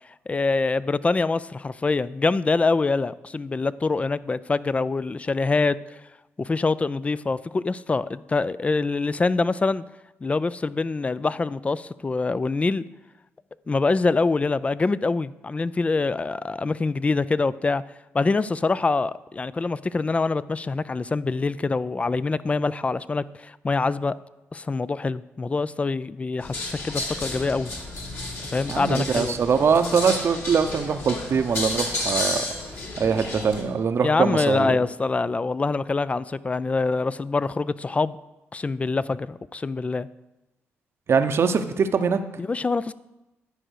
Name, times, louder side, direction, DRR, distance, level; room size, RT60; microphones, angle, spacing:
voice 1, 0.3-5.8 6.4-9.8 10.2-12.8 13.7-17.8 18.1-24.2 24.5-27.7 28.5-29.4 34.0-38.2 38.5-40.1 42.4-42.9, left 3 dB, 25° left, 18 dB, 0.4 m, -25 dB
sound 1, 26.4-33.6, left 2 dB, 55° left, 2.4 m, -32 dB
voice 2, 28.7-32.5 33.0-34.8 41.1-42.2, right 6 dB, 55° right, 9 dB, 0.7 m, -22 dB
10.5 x 4.9 x 6.4 m, 1.0 s
supercardioid pair, 65°, 5 cm